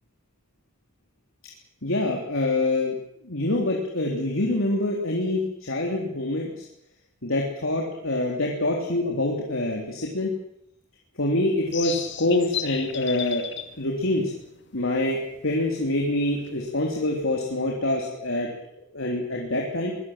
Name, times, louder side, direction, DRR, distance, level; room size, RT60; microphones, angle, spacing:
voice 1, 1.8-3.0 3.2-6.6 7.2-10.4 11.2-13.4 13.7-14.3 14.7-18.5 18.9-19.9, left 2 dB, 80° left, -1 dB, 3.7 m, -25 dB
sound 1, 11.6-17.5, left 9 dB, 60° left, 2.5 m, -36 dB
24.0 x 18.5 x 7.6 m, 0.78 s
head